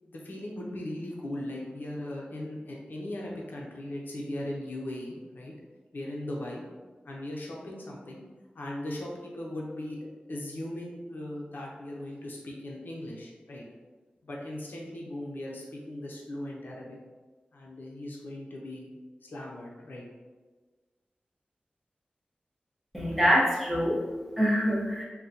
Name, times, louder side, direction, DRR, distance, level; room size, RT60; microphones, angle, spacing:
voice 1, 0.0-5.5 5.9-6.6 7.0-8.2 8.5-13.6 14.2-17.0 17.5-18.9 19.2-20.0, left 1 dB, 80° left, -2 dB, 0.6 m, -38 dB
voice 2, 22.9-25.1, equal, 5° right, -6 dB, 0.8 m, -25 dB
3.7 x 2.1 x 2.8 m, 1.3 s
wide cardioid pair, 105°, 3 cm